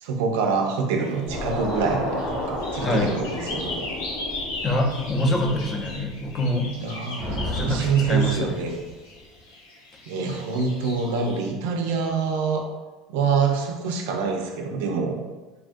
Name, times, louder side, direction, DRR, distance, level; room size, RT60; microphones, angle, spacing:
voice 1, 0.0-3.9 6.8-8.8 10.1-12.7 13.1-15.2, right 5 dB, 85° right, 3 dB, 0.4 m, -25 dB
sound 1, 1.0-11.5, left 2 dB, 90° left, 0.8 m, -38 dB
sound 2, 1.3-6.5, left 1 dB, 75° left, 1.2 m, -32 dB
voice 2, 2.8-3.1 4.6-6.7 7.4-8.5, left 1 dB, 30° left, 2 dB, 0.5 m, -25 dB
Thunder, 7.2-9.4, equal, 15° right, 0.6 m, -33 dB
3.1 x 2.4 x 2.5 m, 1.2 s
supercardioid pair, 115°, 0 cm